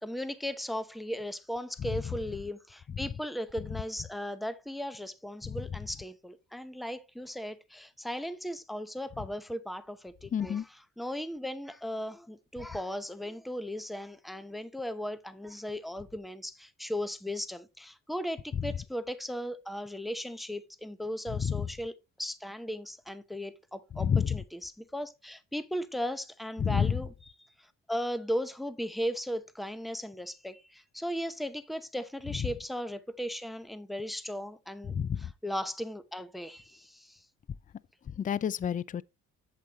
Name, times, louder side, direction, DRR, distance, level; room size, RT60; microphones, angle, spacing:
voice 1, 0.0-10.6 11.0-21.9 22.2-27.1 27.9-37.2, equal, ahead, 0.8 m, -37 dB
voice 2, 10.3-10.6 18.5-18.7 21.4-21.7 23.9-24.4 26.6-27.0 34.8-35.3 38.2-39.0, left 7 dB, 30° left, 0.4 m, -29 dB
8.3 x 7.8 x 2.9 m
cardioid pair, 90°, 30 cm